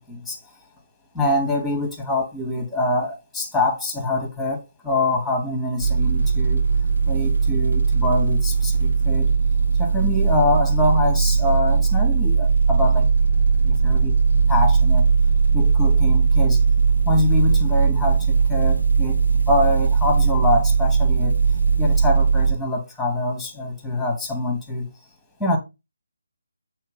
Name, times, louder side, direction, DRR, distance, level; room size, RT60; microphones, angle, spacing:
voice 1, 0.1-0.4 1.1-6.7 7.0-9.3 9.8-13.1 13.6-14.1 14.5-15.1 15.5-16.6 17.0-19.2 19.5-21.4 21.8-24.9 25.4-25.6, left 2 dB, ahead, 1.2 m, -24 dB
sound 1, 5.8-22.5, right 5 dB, 65° right, 1.5 m, -19 dB
7.9 x 3.1 x 5.2 m
figure-of-eight pair, 150°, 0 cm